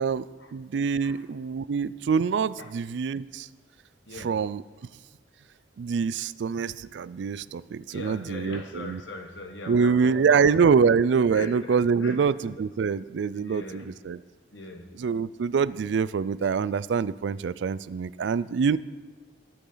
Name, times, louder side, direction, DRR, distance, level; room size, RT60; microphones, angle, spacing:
voice 1, 0.0-3.5 4.1-4.6 5.8-9.0 9.7-14.2 14.9-18.8, right 5 dB, 75° right, 18 dB, 0.3 m, -25 dB
voice 2, 7.9-10.4 11.3-12.2 13.3-13.9 14.5-14.9, left 2 dB, 80° left, 5 dB, 1.3 m, -40 dB
20.0 x 7.0 x 3.9 m, 1.3 s
head